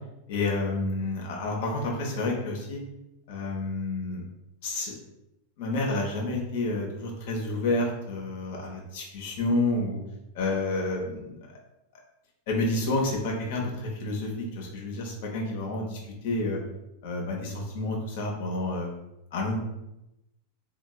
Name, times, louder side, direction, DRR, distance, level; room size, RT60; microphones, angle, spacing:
voice 1, 0.3-2.8 3.3-4.2 4.6-4.9 5.6-10.0 10.3-11.4 12.5-16.6 17.0-18.9 19.3-19.6, left 2 dB, 50° left, 0 dB, 0.8 m, -29 dB
3.5 x 2.9 x 2.3 m, 0.89 s
figure-of-eight pair, 90°, 0 cm